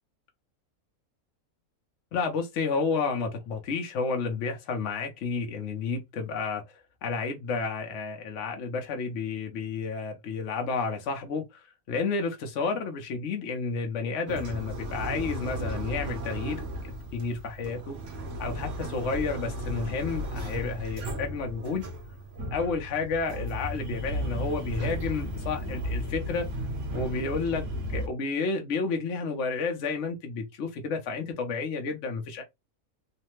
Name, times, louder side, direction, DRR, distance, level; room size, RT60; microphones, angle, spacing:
voice 1, 2.1-18.0 18.4-21.8 22.5-26.5 26.9-32.4, left 4 dB, 65° left, 1.0 m, -31 dB
sound 1, 14.3-28.1, equal, 60° right, 1.1 m, -34 dB
3.2 x 2.1 x 3.0 m
omnidirectional pair, 1.5 m